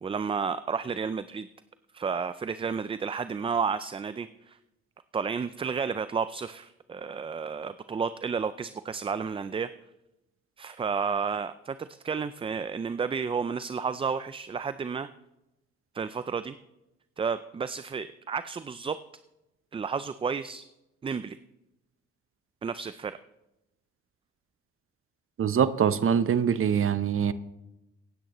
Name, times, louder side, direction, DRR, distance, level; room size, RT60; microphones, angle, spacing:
voice 1, 0.0-1.5 1.9-4.6 5.1-9.7 10.6-15.1 15.9-16.6 17.2-19.0 19.7-20.6 21.0-21.4 22.6-23.2, right 5 dB, 20° right, 0.3 m, -31 dB
voice 2, 25.4-27.3, right 8 dB, 45° right, 0.8 m, -24 dB
16.5 x 9.1 x 3.0 m
cardioid pair, 90°, 30 cm